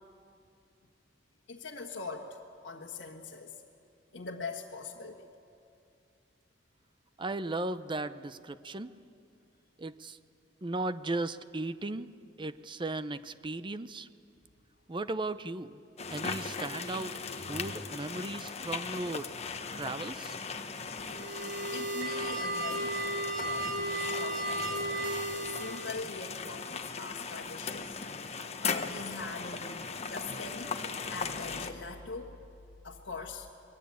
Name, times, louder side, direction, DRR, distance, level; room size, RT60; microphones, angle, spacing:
voice 1, 1.5-2.4 2.6-3.6 4.1-5.2 21.1-21.2 21.7-22.9 23.4-32.4 32.8-33.5, left 4 dB, 70° left, -2 dB, 1.6 m, -42 dB
voice 2, 7.2-8.9 9.8-10.2 10.6-12.1 12.4-14.1 14.9-15.8 16.1-19.3 19.8-20.4, right 2 dB, 25° right, 13 dB, 0.7 m, -36 dB
sound 1, 16.0-31.7, left 5 dB, 35° left, 1.2 m, -38 dB
sound 2, 21.1-26.0, right 1 dB, 75° right, 3.3 m, -34 dB
28.0 x 21.5 x 8.5 m, 2.6 s
head